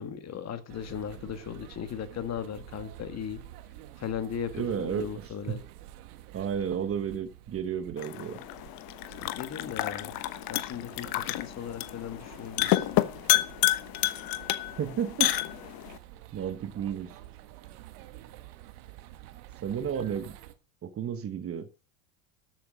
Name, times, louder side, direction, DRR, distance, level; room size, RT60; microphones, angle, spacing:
voice 1, 0.0-3.4 4.0-5.6 9.2-10.1 10.5-12.9, left 8 dB, 35° left, 1.8 m, -37 dB
sound 1, 0.7-20.5, right 14 dB, 70° right, 1.5 m, -49 dB
voice 2, 4.5-5.6 6.3-8.4 14.8-15.3 16.3-17.1 19.6-20.3 20.8-21.7, right 8 dB, 30° right, 1.1 m, -32 dB
sound 2, 8.0-16.0, left 16 dB, 50° left, 1.2 m, -30 dB
13.0 x 7.9 x 5.2 m
hypercardioid pair, 95°, 46 cm